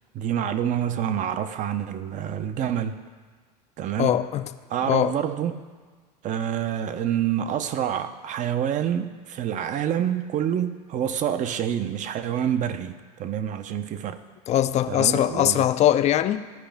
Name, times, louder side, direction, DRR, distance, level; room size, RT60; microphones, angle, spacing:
voice 1, 0.1-3.0 3.8-4.2 4.7-5.6 6.2-14.2 14.9-15.7, right 9 dB, 40° right, 11 dB, 0.7 m, -27 dB
voice 2, 4.0-4.5 4.9-5.1 14.5-16.5, left 12 dB, 35° left, 11 dB, 0.4 m, -21 dB
14.0 x 5.1 x 3.4 m, 1.5 s
hypercardioid pair, 95°, 21 cm